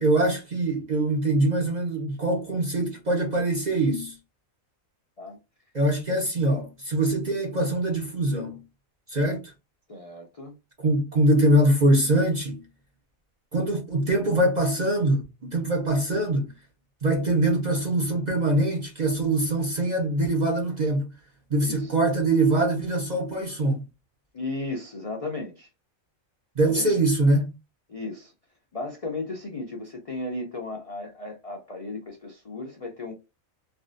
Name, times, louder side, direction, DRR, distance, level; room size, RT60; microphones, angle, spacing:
voice 1, 0.0-4.2 5.7-8.6 9.1-9.5 10.8-12.6 13.5-16.5 17.0-21.1 21.5-23.8 26.6-27.5, right 1 dB, 45° right, 0.6 m, -23 dB
voice 2, 9.9-10.6 21.6-21.9 24.3-25.7 26.6-26.9 27.9-28.3 28.7-33.1, left 2 dB, 50° left, 0.4 m, -35 dB
3.4 x 2.4 x 2.5 m
omnidirectional pair, 1.4 m